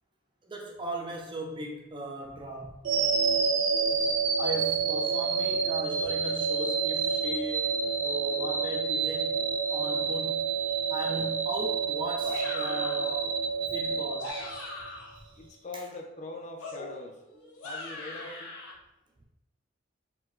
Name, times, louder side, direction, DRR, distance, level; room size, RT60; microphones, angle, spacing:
voice 1, 0.4-2.9 4.4-7.7 8.0-9.4 9.7-10.4 10.9-13.4 13.6-14.4 15.2-15.3 15.7-15.8, right 1 dB, 25° right, 0 dB, 0.5 m, -38 dB
sound 1, 2.8-15.0, right 5 dB, 80° right, 0.4 m, -28 dB
sound 2, 12.2-13.1 14.0-15.2 16.6-18.7, left 2 dB, 80° left, 0.6 m, -41 dB
voice 2, 15.3-17.2 17.6-18.5, left 3 dB, 40° left, 2 dB, 0.5 m, -42 dB
4.3 x 2.2 x 2.4 m, 0.91 s
head